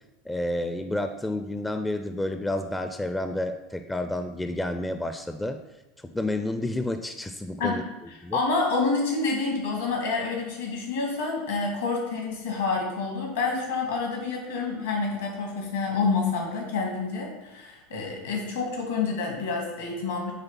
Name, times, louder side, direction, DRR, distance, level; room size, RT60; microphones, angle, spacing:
voice 1, 0.3-5.6 6.0-7.8 8.2-8.4, left 1 dB, 10° left, 7 dB, 0.4 m, -30 dB
voice 2, 8.3-20.3, left 4 dB, 70° left, 0 dB, 2.0 m, -28 dB
8.1 x 3.3 x 5.7 m, 1.0 s
figure-of-eight pair, 75°, 0 cm